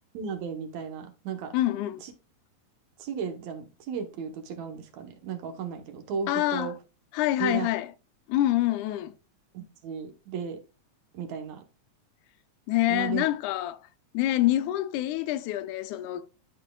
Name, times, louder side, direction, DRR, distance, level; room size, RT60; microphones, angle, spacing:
voice 1, 0.1-1.5 2.0-2.1 3.0-6.7 7.4-7.7 9.5-10.6 11.1-11.6 12.9-13.2, right 6 dB, 70° right, 2.3 m, -35 dB
voice 2, 1.5-2.0 6.3-6.7 7.1-7.9 8.3-9.1 12.7-13.8 14.1-16.3, left 14 dB, 80° left, 2.0 m, -26 dB
12.0 x 5.5 x 2.3 m
omnidirectional pair, 3.5 m